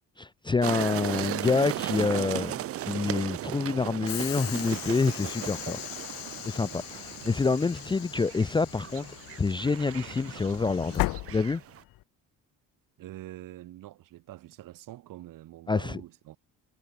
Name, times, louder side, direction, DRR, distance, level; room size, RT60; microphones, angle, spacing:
voice 1, 0.2-5.8 6.4-11.6 15.7-15.9, left 4 dB, 15° left, 0.6 m, -27 dB
sound 1, 0.6-11.8, right 13 dB, 45° right, 0.6 m, -37 dB
Train / Sliding door, 4.1-12.0, left 19 dB, 80° left, 1.6 m, -38 dB
voice 2, 13.0-16.4, right 15 dB, 70° right, 7.5 m, -45 dB
cardioid pair, 135°, 34 cm